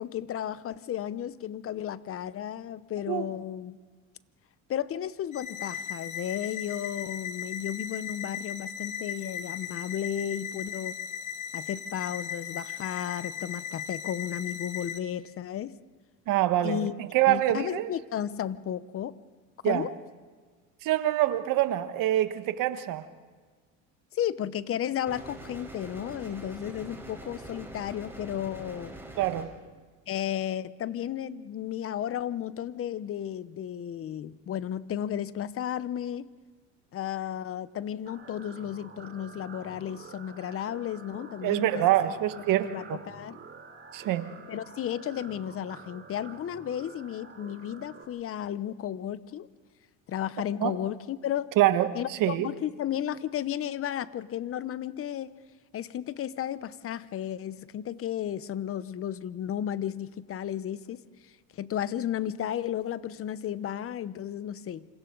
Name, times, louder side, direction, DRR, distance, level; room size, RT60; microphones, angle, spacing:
voice 1, 0.0-3.8 4.7-11.0 11.5-15.7 16.6-17.0 17.3-19.2 19.6-19.9 24.1-28.9 30.1-36.3 36.9-41.8 42.6-43.4 44.5-49.5 50.1-51.5 51.9-55.4 55.7-61.0 61.6-64.9, left 10 dB, 40° left, 16 dB, 0.8 m, -33 dB
sound 1, 5.3-15.0, left 8 dB, 55° left, 1.9 m, -37 dB
voice 2, 16.3-17.9 19.6-19.9 20.8-23.0 29.2-29.5 41.4-42.7 43.9-44.3 50.6-50.7 51.6-52.5, right 13 dB, 60° right, 10 dB, 1.6 m, -25 dB
sound 2, 25.1-29.5, right 1 dB, 5° right, 4.6 m, -44 dB
sound 3, 38.1-48.1, right 5 dB, 30° right, 3.4 m, -48 dB
27.5 x 26.5 x 3.9 m, 1.4 s
supercardioid pair, 110°, 36 cm